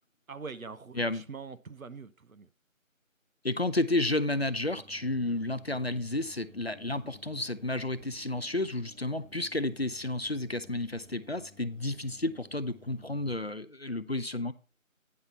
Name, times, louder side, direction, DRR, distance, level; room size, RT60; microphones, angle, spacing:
voice 1, 0.3-2.5, right 5 dB, 85° right, 1.0 m, -43 dB
voice 2, 3.4-14.5, left 2 dB, 50° left, 0.5 m, -31 dB
sound 1, 4.4-13.4, equal, 60° right, 1.3 m, -56 dB
9.4 x 5.7 x 4.3 m
figure-of-eight pair, 180°, 41 cm